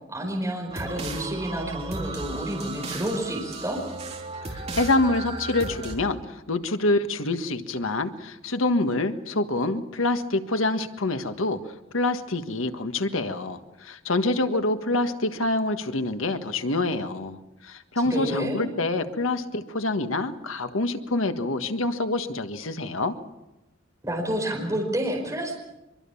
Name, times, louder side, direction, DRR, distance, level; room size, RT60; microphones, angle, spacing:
voice 1, 0.1-3.8 18.0-18.7 24.0-25.6, right 1 dB, 15° right, 0 dB, 4.8 m, -29 dB
sound 1, 0.7-5.9, right 2 dB, 30° right, 3.5 m, -35 dB
voice 2, 4.5-11.6 11.9-23.1, left 2 dB, 80° left, 8 dB, 1.6 m, -26 dB
24.5 x 23.5 x 7.1 m, 0.97 s
head